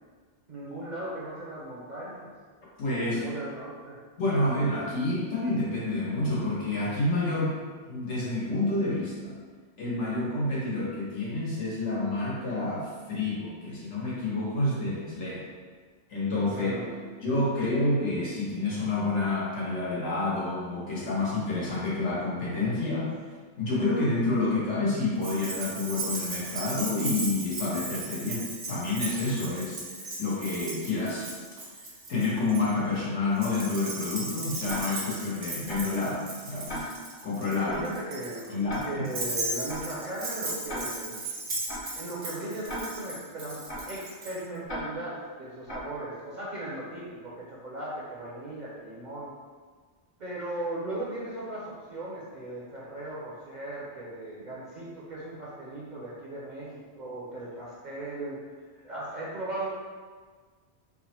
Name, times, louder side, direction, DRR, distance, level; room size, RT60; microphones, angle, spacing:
voice 1, 0.5-2.3 3.0-4.0 16.5-16.9 37.7-38.5 38.8-41.2 41.9-49.3 50.2-58.4 58.7-59.7, right 1 dB, 50° right, -6 dB, 0.7 m, -37 dB
voice 2, 2.8-3.2 4.2-7.6 7.9-9.3 9.8-15.5 16.1-16.7 17.2-23.1 23.6-31.3 32.1-36.9 37.2-37.8 38.5-38.9, left 2 dB, 85° left, -6 dB, 1.4 m, -29 dB
Keys jangling, 25.2-32.6 33.4-44.3, right 2 dB, 85° right, 1.3 m, -36 dB
Tick-tock, 34.7-34.8 35.7-35.8 36.7-36.8 37.7-37.8 38.7-38.8 39.7-39.8 40.7-40.8 41.7-41.8 42.7-42.8 43.7-43.8 44.7-44.8 45.7-45.8, equal, 50° left, 1.1 m, -36 dB
3.5 x 2.1 x 4.3 m, 1.5 s
omnidirectional pair, 1.2 m